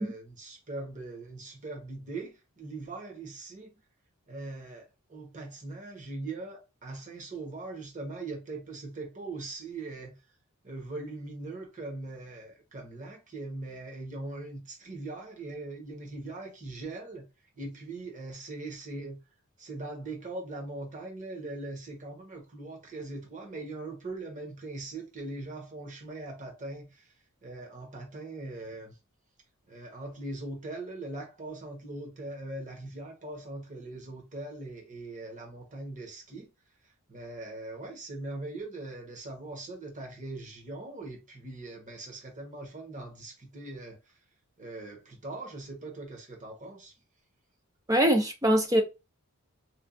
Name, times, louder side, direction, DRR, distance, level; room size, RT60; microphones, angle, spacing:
voice 1, 0.0-3.7 4.3-10.2 10.6-17.3 17.5-19.2 19.6-27.1 27.4-29.0 29.7-36.5 36.8-44.0 44.6-46.9, right 2 dB, 35° right, 1.2 m, -41 dB
voice 2, 47.9-48.8, equal, 15° right, 0.5 m, -22 dB
4.4 x 2.4 x 2.5 m
head